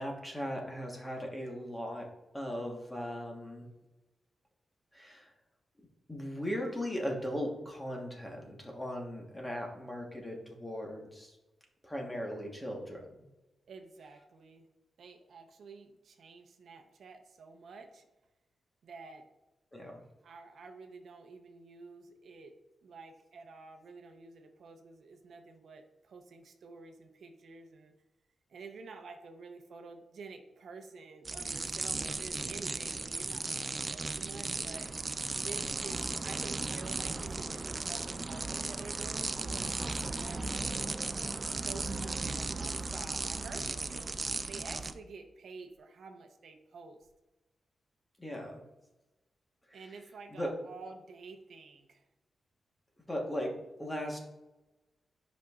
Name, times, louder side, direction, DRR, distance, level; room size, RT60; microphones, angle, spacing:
voice 1, 0.0-2.1 2.3-3.7 4.9-5.3 6.1-11.4 11.8-13.1 19.7-20.0 48.2-48.6 49.7-49.8 50.3-50.5 53.1-53.5 53.8-54.2, equal, 10° left, 0 dB, 1.2 m, -38 dB
voice 2, 13.7-14.7 15.0-18.1 18.8-19.3 20.2-22.6 22.8-27.9 28.5-34.9 35.3-39.7 40.0-40.7 41.6-47.1 49.7-52.0, right 4 dB, 70° right, 5 dB, 0.7 m, -49 dB
sound 1, 31.3-44.9, right 3 dB, 25° right, 0.3 m, -36 dB
10.5 x 5.2 x 2.4 m, 1.0 s
wide cardioid pair, 150°, 0 cm